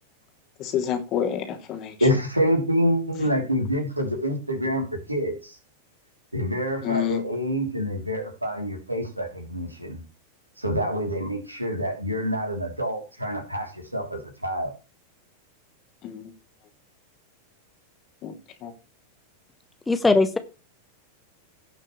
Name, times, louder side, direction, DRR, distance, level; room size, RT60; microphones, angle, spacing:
voice 1, 0.6-1.9 6.8-7.2 16.0-16.2 18.2-18.3 18.6-18.7, left 9 dB, 35° left, 2.8 m, -28 dB
voice 2, 2.0-5.6 6.3-10.0 10.6-14.7, equal, 85° right, 3.1 m, -27 dB
voice 3, 19.9-20.4, left 3 dB, 10° left, 1.0 m, -19 dB
17.5 x 6.5 x 3.2 m
figure-of-eight pair, 90°, 0 cm